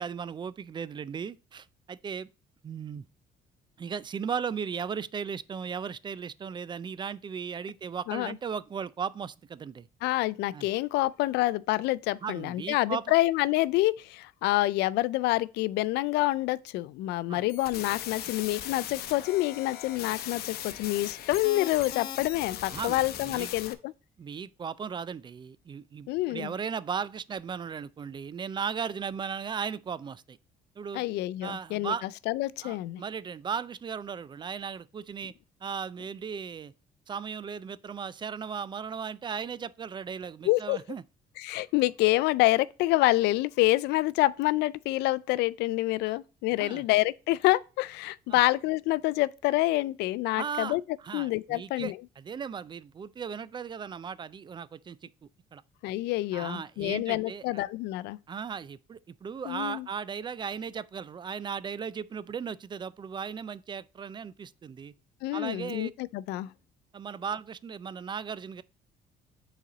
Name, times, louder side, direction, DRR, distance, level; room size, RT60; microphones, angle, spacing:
voice 1, 0.0-2.3 2.6-3.1 3.8-9.9 10.5-10.7 12.2-13.1 17.3-17.4 22.7-23.5 24.2-30.4 30.8-31.0 31.4-32.1 32.6-35.3 35.6-36.7 37.1-41.0 46.1-46.2 46.6-46.8 48.3-48.4 50.3-55.6 56.3-57.6 58.3-64.9 65.3-65.9 66.9-68.6, right 6 dB, 25° right, 0.3 m, -36 dB
voice 2, 10.0-23.9 26.1-26.5 30.9-31.9 32.3-33.0 40.5-40.8 41.4-50.8 51.1-52.0 55.8-58.2 59.5-59.9 65.2-66.5, left 18 dB, 85° left, 0.4 m, -27 dB
sound 1, 17.5-23.7, left 11 dB, 70° left, 0.8 m, -39 dB
7.4 x 4.1 x 3.9 m
cardioid pair, 110°, 17 cm